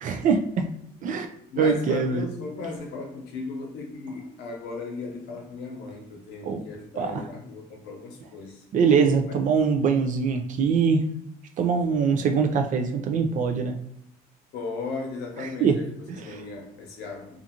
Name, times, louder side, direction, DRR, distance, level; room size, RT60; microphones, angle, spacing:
voice 1, 0.0-0.7 1.0-1.3 1.6-2.3 6.4-6.6 7.0-7.2 8.7-11.0 11.6-13.8 15.4-15.8 16.1-16.4, right 5 dB, 50° right, 5 dB, 0.4 m, -23 dB
voice 2, 1.5-8.6 14.5-17.4, left 3 dB, 80° left, 1 dB, 0.8 m, -36 dB
2.5 x 2.4 x 2.8 m, 0.73 s
cardioid pair, 110°, 17 cm